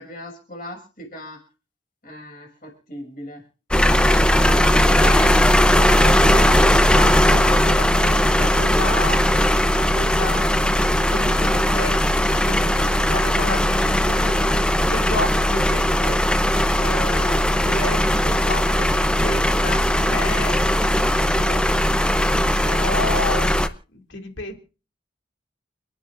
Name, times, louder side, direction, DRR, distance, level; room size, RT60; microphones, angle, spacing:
voice 1, 0.0-1.4 2.0-3.4, left 1 dB, 50° left, 2 dB, 6.1 m, -39 dB
sound 1, 3.7-23.7, equal, 5° left, 0.6 m, -18 dB
voice 2, 4.6-5.4 5.7-14.5 14.9-21.7 22.1-23.5 23.9-24.6, left 2 dB, 90° left, 3 dB, 2.6 m, -32 dB
29.5 x 10.0 x 2.6 m, 0.35 s
head